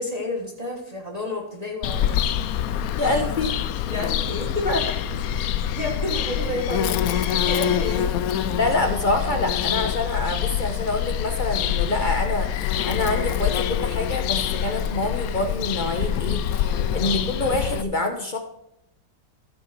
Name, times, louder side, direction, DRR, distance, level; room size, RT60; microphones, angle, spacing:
voice 1, 0.0-2.2 3.8-4.7 5.6-8.1 16.7-16.9, left 1 dB, 20° right, -1 dB, 1.5 m, -30 dB
Bird vocalization bird call bird song, 1.8-17.8, left 10 dB, 70° left, 0.9 m, -25 dB
voice 2, 3.0-3.6 4.6-4.8 8.6-18.4, left 2 dB, 35° left, 4 dB, 0.9 m, -26 dB
14.5 x 6.2 x 4.4 m, 0.77 s
omnidirectional pair, 1.9 m